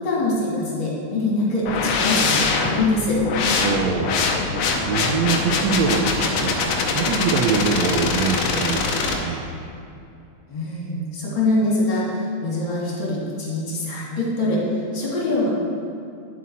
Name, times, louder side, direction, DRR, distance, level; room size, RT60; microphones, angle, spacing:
voice 1, 0.0-3.2 10.5-15.5, left 2 dB, 40° left, -5 dB, 2.4 m, -24 dB
sound 1, 1.7-9.2, left 4 dB, 85° left, 1.2 m, -23 dB
voice 2, 3.6-9.5, right 5 dB, 85° right, 1 dB, 1.5 m, -24 dB
10.0 x 7.5 x 4.2 m, 2.6 s
omnidirectional pair, 3.7 m